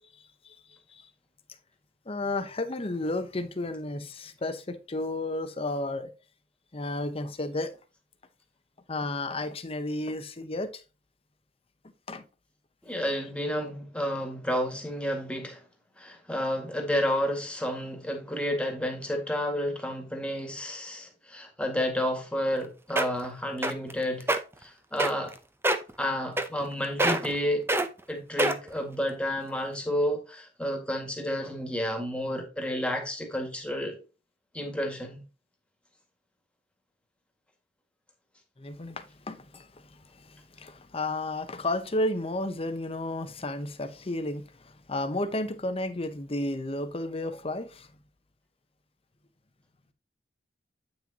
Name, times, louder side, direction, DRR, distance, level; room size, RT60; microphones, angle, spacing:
voice 1, 0.4-1.0 2.1-6.1 6.7-7.7 8.9-10.7 12.1-12.2 38.6-47.9, left 2 dB, 30° left, 0.8 m, -32 dB
voice 2, 12.8-15.6 16.0-24.3 24.6-25.3 26.0-27.7 28.1-34.0 34.5-35.2, equal, 5° left, 1.8 m, -31 dB
sound 1, 22.5-22.6 23.0-23.3 23.6-23.9 24.2-24.4 25.0-25.3 25.6-25.9 26.4-26.7 27.0-27.4 27.7-27.9 28.4-28.8 29.4-29.5, right 1 dB, 15° right, 0.6 m, -25 dB
8.8 x 6.0 x 2.8 m
head